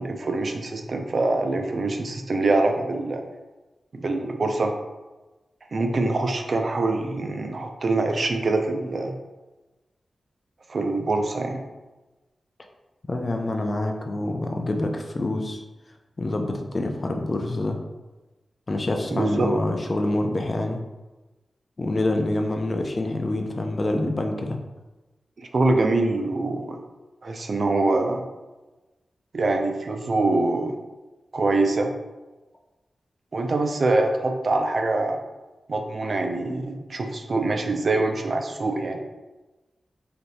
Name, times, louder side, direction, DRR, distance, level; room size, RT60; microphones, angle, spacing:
voice 1, 0.0-3.2 3.9-4.7 5.7-9.2 10.7-11.6 19.1-19.5 25.4-26.8 27.2-28.2 29.3-30.7 31.3-31.9 33.3-35.2 35.7-39.0, right 2 dB, 55° right, 4 dB, 0.4 m, -24 dB
voice 2, 13.1-15.6 16.2-17.8 18.7-20.8 21.8-24.6, left 2 dB, 35° left, 3 dB, 0.5 m, -26 dB
3.4 x 2.8 x 4.0 m, 1.1 s
wide cardioid pair, 85°, 0 cm